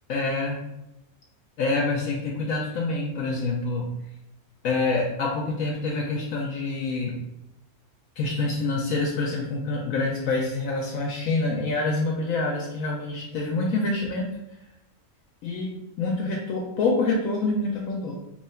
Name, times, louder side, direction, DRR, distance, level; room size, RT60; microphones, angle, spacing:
voice 1, 0.1-0.6 1.6-3.9 4.6-7.2 8.2-14.3 15.4-18.1, left 3 dB, 70° left, -1 dB, 0.9 m, -26 dB
2.9 x 2.3 x 4.2 m, 0.90 s
omnidirectional pair, 1.6 m